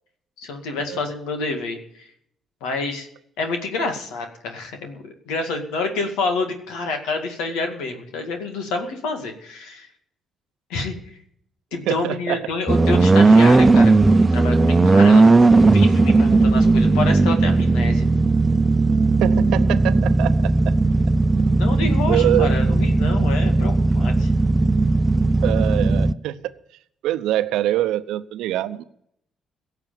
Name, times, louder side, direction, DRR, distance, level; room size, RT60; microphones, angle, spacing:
voice 1, 0.4-2.1 2.6-3.1 3.4-9.9 10.7-11.0 11.7-13.9 14.3-18.1 21.6-24.3, left 3 dB, 80° left, 5 dB, 2.2 m, -28 dB
voice 2, 11.9-12.4 19.2-20.8 22.1-22.5 25.4-26.4 27.0-28.8, right 13 dB, 75° right, 12 dB, 0.8 m, -24 dB
sound 1, 12.7-26.1, right 3 dB, 25° right, 0.7 m, -16 dB
17.5 x 6.9 x 9.0 m, 0.71 s
hypercardioid pair, 55°, 0 cm